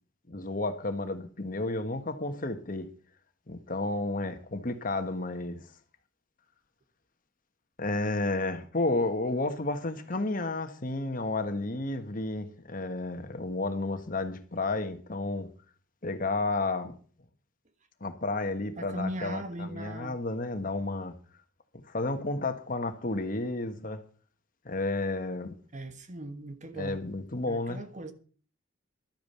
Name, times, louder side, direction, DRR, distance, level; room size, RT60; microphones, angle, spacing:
voice 1, 0.3-2.9 3.5-5.6 7.8-15.5 16.0-16.9 18.0-21.1 21.7-24.0 24.6-25.6 26.8-27.8, left 2 dB, 45° left, 1.5 m, -32 dB
voice 2, 18.8-20.2 25.7-27.1 27.5-28.1, right 1 dB, 40° right, 1.5 m, -39 dB
12.0 x 8.9 x 6.9 m
head